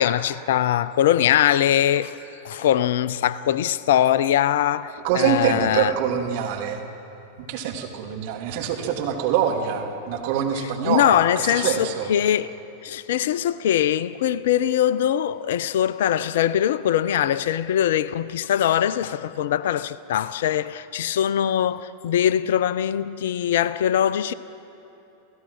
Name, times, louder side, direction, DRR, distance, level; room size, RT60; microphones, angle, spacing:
voice 1, 0.0-2.2 2.4-5.9 10.8-12.6 12.8-24.3, left 10 dB, 55° left, 0.5 m, -22 dB
voice 2, 5.0-6.8 7.5-12.1, right 9 dB, 50° right, 2.5 m, -25 dB
29.0 x 16.0 x 6.0 m
figure-of-eight pair, 90°, 0 cm